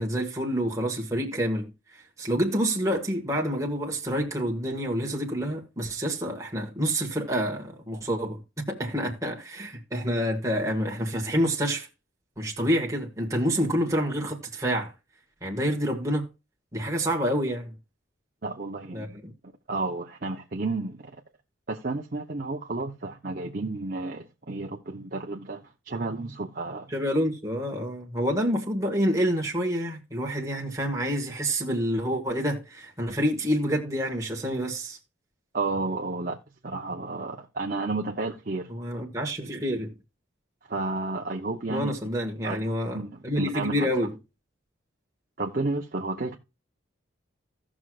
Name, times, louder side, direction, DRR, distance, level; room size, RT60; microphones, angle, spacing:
voice 1, 0.0-11.9 12.4-14.9 15.4-16.3 16.7-17.7 18.9-19.3 26.9-35.0 38.7-39.9 41.7-44.1, equal, 15° right, 1.5 m, -28 dB
voice 2, 18.4-19.2 19.7-21.2 21.7-26.9 35.5-36.4 36.6-38.7 40.7-42.0 42.4-43.9 45.4-46.4, right 3 dB, 45° right, 0.8 m, -32 dB
16.5 x 6.2 x 2.4 m
head